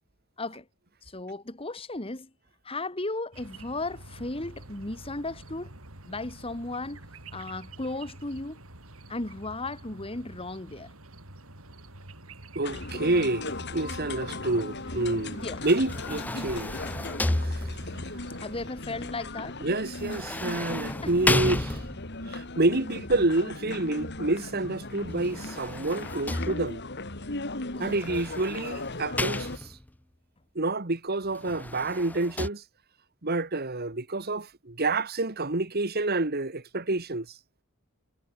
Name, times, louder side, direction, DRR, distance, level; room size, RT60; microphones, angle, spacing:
voice 1, 1.0-2.3 2.6-5.7 6.1-7.0 7.3-8.6 9.1-10.9 15.3-15.6 18.4-19.6 20.8-21.1 27.7-28.0, left 2 dB, 25° left, 1.8 m, -35 dB
sound 1, 3.3-18.7, right 2 dB, 75° right, 6.1 m, -48 dB
sound 2, 12.6-29.6, left 2 dB, 55° left, 2.9 m, -37 dB
voice 2, 12.6-16.7 17.4-17.6 19.6-21.8 22.3-26.8 27.8-29.5 30.6-32.6 33.2-37.3, right 2 dB, 45° right, 1.8 m, -28 dB
sound 3, 15.7-18.1 20.0-22.2 25.1-27.0 28.0-30.0 31.3-32.5, left 2 dB, 10° left, 0.3 m, -32 dB
head